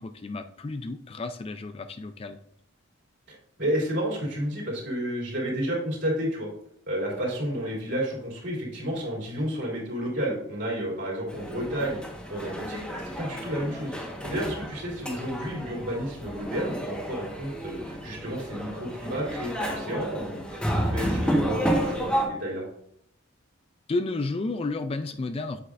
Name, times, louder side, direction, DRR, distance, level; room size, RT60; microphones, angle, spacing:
voice 1, 0.0-2.4 23.9-25.6, left 3 dB, 25° left, 9 dB, 0.3 m, -32 dB
voice 2, 3.3-6.5 6.9-13.9 14.2-22.6, equal, 55° right, -3 dB, 3.3 m, -31 dB
sound 1, 11.3-22.3, equal, 5° left, 1.3 m, -31 dB
8.1 x 7.9 x 2.5 m, 0.71 s
head